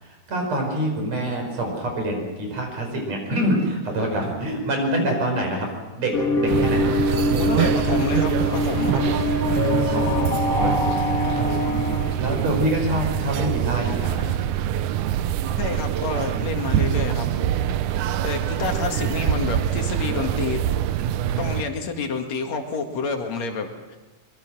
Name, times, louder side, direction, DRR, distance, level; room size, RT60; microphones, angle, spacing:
voice 1, 0.0-5.7 6.0-7.0 9.9-11.0 12.2-14.4, right 1 dB, 60° right, 2 dB, 6.3 m, -26 dB
sound 1, 6.1-12.2, left 2 dB, 35° left, 1.8 m, -24 dB
sound 2, 6.5-21.6, right 11 dB, 85° right, 2.3 m, -25 dB
voice 2, 7.3-9.3 15.5-17.3 18.2-20.6 21.4-24.0, left 5 dB, 65° left, 4 dB, 3.2 m, -29 dB
24.0 x 23.0 x 6.2 m, 1.2 s
omnidirectional pair, 3.4 m